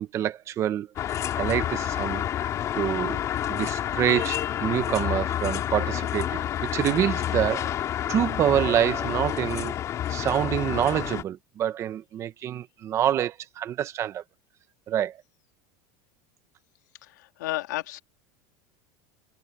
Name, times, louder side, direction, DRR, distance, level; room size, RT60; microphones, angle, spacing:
voice 1, 0.0-3.2 3.5-7.7 8.1-9.7 10.1-14.2 14.9-15.2, right 11 dB, 30° right, 1.2 m, -27 dB
sound 1, 1.0-11.2, left 11 dB, 35° left, 4.4 m, -29 dB
voice 2, 17.0-18.0, left 18 dB, 90° left, 2.4 m, -32 dB
supercardioid pair, 150°, 9 cm